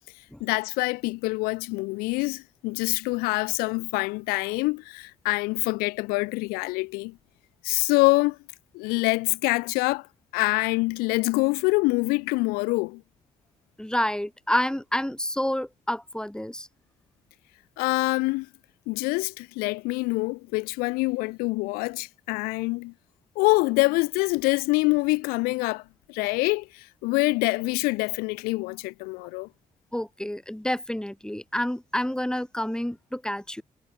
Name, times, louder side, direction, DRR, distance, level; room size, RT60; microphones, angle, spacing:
voice 1, 0.4-7.2 7.6-8.4 8.7-10.1 10.3-13.0 17.8-18.5 18.9-22.9 23.3-25.8 26.1-29.5, left 25 dB, 90° left, 2.9 m, -25 dB
voice 2, 13.8-16.7 29.9-33.6, left 1 dB, 5° left, 3.6 m, -29 dB
hypercardioid pair, 45°, 15 cm